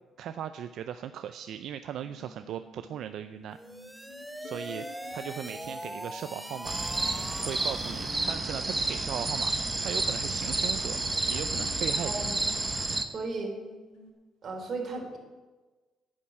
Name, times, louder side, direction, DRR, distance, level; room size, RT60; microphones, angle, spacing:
voice 1, 0.2-3.6 4.4-4.9 5.1-6.8 7.4-9.5 9.8-11.0 11.3-12.3, right 9 dB, 70° right, 10 dB, 0.5 m, -38 dB
sound 1, 2.0-14.1, left 4 dB, 90° left, 2.2 m, -52 dB
sound 2, 3.5-8.3, equal, 5° right, 0.9 m, -41 dB
sound 3, 6.6-13.0, right 2 dB, 25° right, 1.2 m, -30 dB
voice 2, 13.0-13.5 14.4-15.2, right 3 dB, 50° right, 0 dB, 3.8 m, -35 dB
10.5 x 7.3 x 8.6 m, 1.3 s
supercardioid pair, 70°, 0 cm